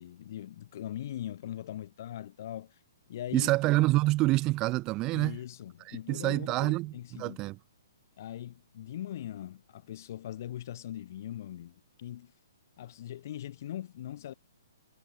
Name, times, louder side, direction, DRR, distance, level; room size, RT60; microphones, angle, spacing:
voice 1, 0.0-2.7 3.1-3.5 5.1-7.4 8.2-12.3 12.8-14.3, left 12 dB, 55° left, 3.8 m, -41 dB
voice 2, 3.3-5.4 5.9-6.9 7.2-7.6, right 20 dB, 25° right, 0.3 m, -27 dB
hypercardioid pair, 130°, 2 cm